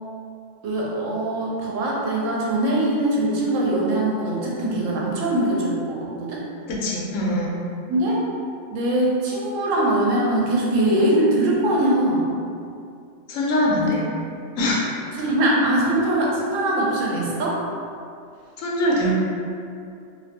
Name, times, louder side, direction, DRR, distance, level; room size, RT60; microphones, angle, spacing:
voice 1, 0.6-6.4 7.9-8.2 8.7-12.4 13.8-14.2 15.1-17.6, right 1 dB, 85° right, -4 dB, 1.0 m, -22 dB
voice 2, 6.7-7.5 13.3-14.0 14.6-14.8 18.6-19.1, left 1 dB, 90° left, -4 dB, 1.0 m, -22 dB
2.6 x 2.1 x 2.7 m, 2.5 s
omnidirectional pair, 1.3 m